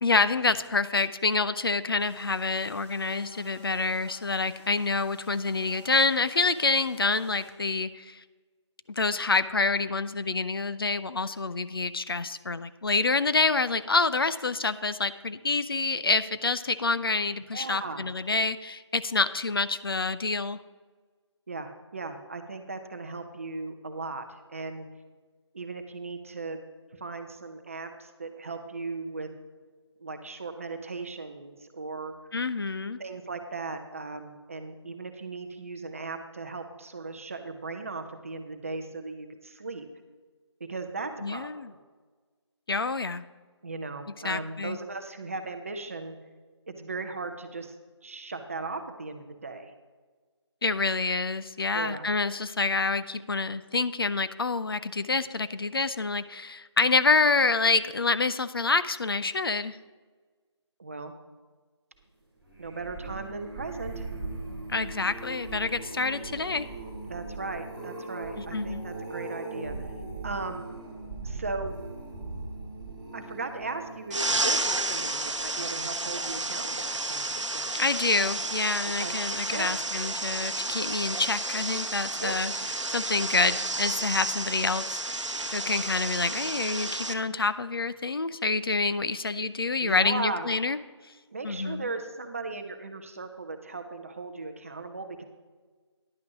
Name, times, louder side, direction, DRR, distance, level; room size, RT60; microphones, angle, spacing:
voice 1, 0.0-8.2 9.0-20.6 32.3-33.0 41.2-41.7 42.7-43.2 44.2-44.8 50.6-59.8 64.7-66.7 68.4-68.9 77.7-82.5 82.9-85.0 85.5-90.8 91.4-91.9, left 3 dB, 50° left, 14 dB, 0.4 m, -27 dB
sound 1, 2.0-7.5, left 1 dB, 25° left, 1.3 m, -52 dB
voice 2, 17.5-18.1 21.5-24.9 25.5-26.6 26.9-29.3 30.0-32.1 33.0-39.9 40.6-41.8 43.6-46.2 46.7-47.8 48.0-49.7 51.7-52.1 60.8-61.1 62.6-64.1 67.1-69.8 70.2-70.7 71.2-71.8 73.1-77.8 79.0-79.2 79.5-79.8 82.2-82.4 89.1-89.3 89.8-90.5 91.3-95.2, right 3 dB, 30° right, 7 dB, 0.6 m, -37 dB
sound 2, 62.4-75.8 76.3-76.6 76.9-77.0, right 3 dB, 5° left, 2.4 m, -40 dB
sound 3, 74.1-87.1, right 2 dB, 90° right, 0.8 m, -31 dB
10.5 x 5.9 x 5.9 m, 1.4 s
figure-of-eight pair, 160°, 15 cm